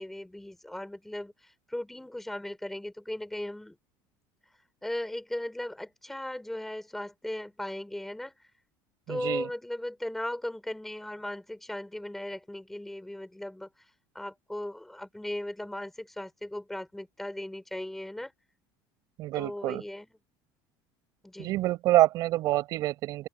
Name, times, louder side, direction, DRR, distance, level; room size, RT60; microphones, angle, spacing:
voice 1, 0.0-3.8 4.8-8.3 9.1-13.7 14.1-18.3 19.3-20.1 21.2-21.6, left 1 dB, 5° left, 3.9 m, -37 dB
voice 2, 9.1-9.5 19.2-19.8 21.4-23.3, right 16 dB, 45° right, 5.4 m, -26 dB
open air
cardioid pair, 175°, 9 cm